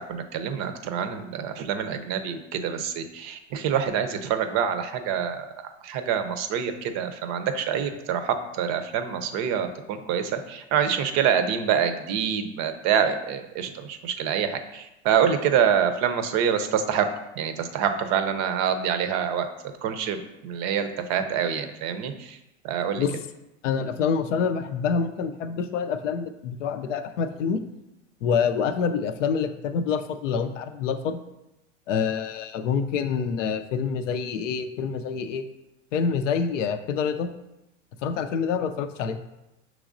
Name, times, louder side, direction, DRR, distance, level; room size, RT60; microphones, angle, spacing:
voice 1, 0.1-5.5 5.8-17.1 17.4-19.5 19.8-20.2 20.4-22.4 22.6-23.0, right 8 dB, 45° right, 9 dB, 0.5 m, -26 dB
voice 2, 23.6-27.6 28.2-31.2 31.9-35.4 35.9-37.3 38.0-39.2, left 6 dB, 80° left, 10 dB, 0.5 m, -26 dB
6.1 x 3.1 x 2.5 m, 0.93 s
hypercardioid pair, 90°, 37 cm